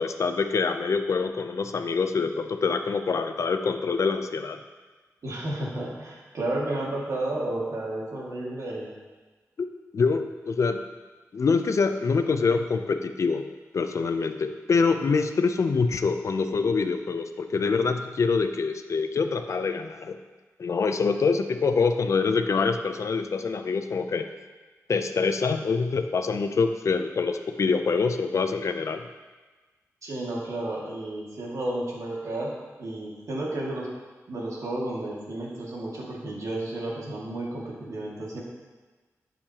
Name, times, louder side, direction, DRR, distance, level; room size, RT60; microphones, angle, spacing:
voice 1, 0.0-4.6 9.9-10.8 11.3-13.5 13.7-20.2 20.6-24.3 24.9-29.0, left 4 dB, 65° left, 8 dB, 0.5 m, -25 dB
voice 2, 5.2-8.9 30.0-32.5 32.8-33.9 34.3-38.4, right 1 dB, 75° right, -4 dB, 2.1 m, -32 dB
11.5 x 6.5 x 2.9 m, 1.3 s
wide cardioid pair, 95°, 6 cm